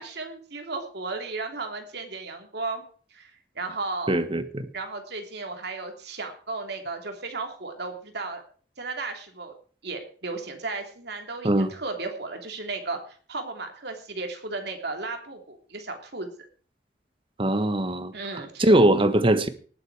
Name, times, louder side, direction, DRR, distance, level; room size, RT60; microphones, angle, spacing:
voice 1, 0.0-2.8 3.1-3.3 3.5-4.1 4.7-8.4 8.8-9.5 9.8-16.3 18.1-18.6, right 3 dB, 65° right, 4 dB, 3.1 m, -34 dB
voice 2, 4.1-4.7 11.4-11.7 17.4-18.1 18.6-19.5, right 1 dB, 30° right, 11 dB, 1.3 m, -21 dB
19.0 x 8.0 x 4.9 m, 0.42 s
head